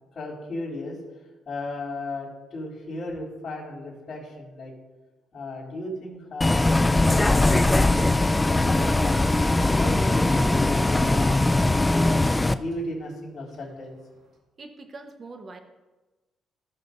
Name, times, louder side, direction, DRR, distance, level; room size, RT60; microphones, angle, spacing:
voice 1, 0.1-1.0 1.5-4.7 5.3-9.3 9.7-12.1 12.5-13.9, left 2 dB, 45° left, -10 dB, 3.3 m, -36 dB
Bus, 6.4-12.5, left 2 dB, 15° left, 0.3 m, -20 dB
Cough, 7.2-8.7 9.1-9.2 9.5-9.9 10.2-12.4 12.7-12.8 13.5-14.3, right 3 dB, 70° right, 1.8 m, -45 dB
voice 2, 14.6-15.6, right 3 dB, 40° right, 6 dB, 1.0 m, -42 dB
15.0 x 6.7 x 2.6 m, 1.2 s
cardioid pair, 90°, 0 cm